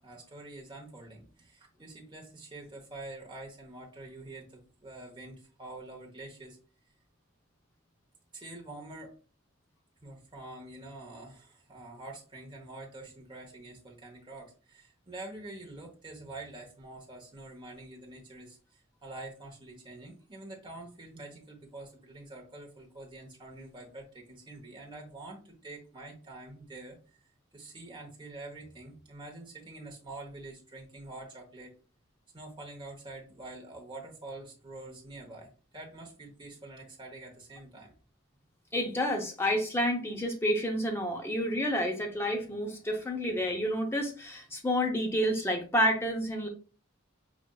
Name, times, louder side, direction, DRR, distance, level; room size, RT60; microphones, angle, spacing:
voice 1, 0.0-6.6 8.3-9.1 10.0-27.3 27.5-31.7 32.3-37.9, right 2 dB, 25° right, -1 dB, 0.9 m, -46 dB
voice 2, 38.7-46.5, equal, 10° left, 2 dB, 0.6 m, -29 dB
5.0 x 2.5 x 2.3 m, 0.36 s
head